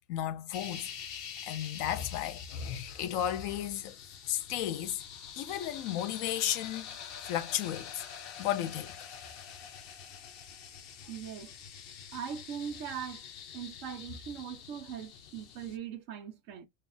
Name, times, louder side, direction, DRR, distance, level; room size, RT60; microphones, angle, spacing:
voice 1, 0.1-0.9 1.4-4.0 4.3-5.0 5.4-6.9 7.3-8.0 8.4-9.1, left 11 dB, 80° left, 1.0 m, -34 dB
sound 1, 0.5-15.8, left 8 dB, 60° left, 0.6 m, -46 dB
voice 2, 11.1-11.5 12.1-13.2 13.5-16.7, right 8 dB, 70° right, 1.1 m, -40 dB
2.9 x 2.3 x 3.8 m
omnidirectional pair, 1.4 m